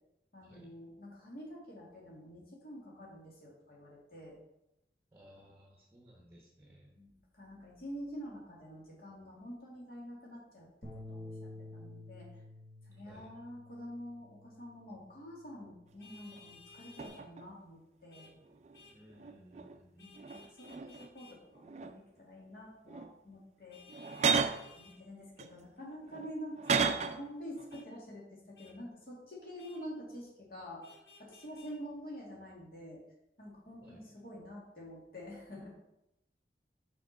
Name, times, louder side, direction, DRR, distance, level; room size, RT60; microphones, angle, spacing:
voice 1, 0.3-4.4 7.0-12.3 12.8-18.3 20.0-23.8 24.8-30.8 31.2-33.0 33.4-35.7, equal, 55° left, -3 dB, 2.3 m, -47 dB
voice 2, 5.1-7.0 13.0-13.3 18.9-20.1 33.8-34.0, equal, 15° right, -1 dB, 1.0 m, -58 dB
sound 1, 10.8-17.1, left 1 dB, 25° left, 1.6 m, -51 dB
Vehicle horn car horn honking, 16.0-17.2 18.1-18.3 18.7-19.0 20.0-21.4 23.7-25.0 26.6-26.8 27.7-27.9 28.5-28.7 29.6-29.8 30.8-31.7, left 4 dB, 75° left, 1.3 m, -57 dB
sound 2, 16.3-16.4 17.0-17.5 18.3-19.8 20.1-21.1 21.5-22.2 22.9-23.1 23.9-24.7 25.4-27.3 27.6-27.8, right 5 dB, 40° right, 0.4 m, -35 dB
5.8 x 5.4 x 5.3 m, 0.88 s
head